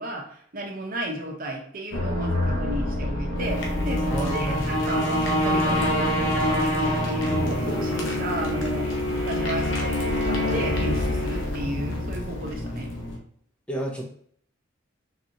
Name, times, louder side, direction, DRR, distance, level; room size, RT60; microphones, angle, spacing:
voice 1, 0.0-8.9 9.2-12.9, right 1 dB, 45° right, 0 dB, 0.9 m, -33 dB
sound 1, 1.9-13.2, left 1 dB, 70° left, 0.8 m, -25 dB
voice 2, 4.1-4.9 13.7-14.1, right 1 dB, 5° left, -1 dB, 0.5 m, -31 dB
4.0 x 2.9 x 2.7 m, 0.62 s
head